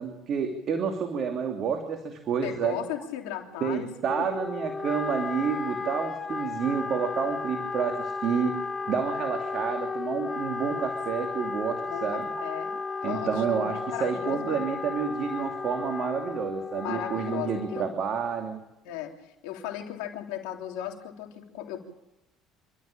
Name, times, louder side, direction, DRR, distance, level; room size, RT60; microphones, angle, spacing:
voice 1, 0.0-2.8 3.6-8.6 8.9-12.3 13.0-18.6, right 6 dB, 55° right, 5 dB, 2.8 m, -29 dB
voice 2, 2.4-3.9 4.2-4.4 11.8-14.6 16.8-17.9 18.8-21.8, left 11 dB, 80° left, 3 dB, 3.4 m, -37 dB
Wind instrument woodwind instrument, 4.0-18.1, left 4 dB, 25° left, 1.0 m, -34 dB
27.5 x 13.0 x 8.7 m, 0.92 s
supercardioid pair, 80°, 0 cm